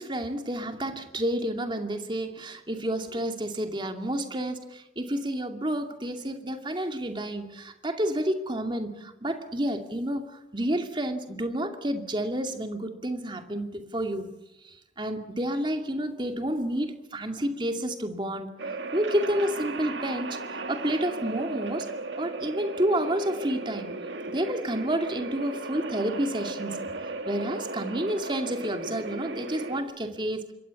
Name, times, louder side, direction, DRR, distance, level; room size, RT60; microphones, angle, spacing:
voice 1, 0.0-14.3 14.6-18.5 18.9-21.9 22.2-23.9 24.3-30.5, right 1 dB, 25° right, 5 dB, 2.5 m, -30 dB
sound 1, 18.6-29.8, right 2 dB, 75° right, 2.1 m, -36 dB
26.5 x 22.5 x 7.2 m, 0.91 s
head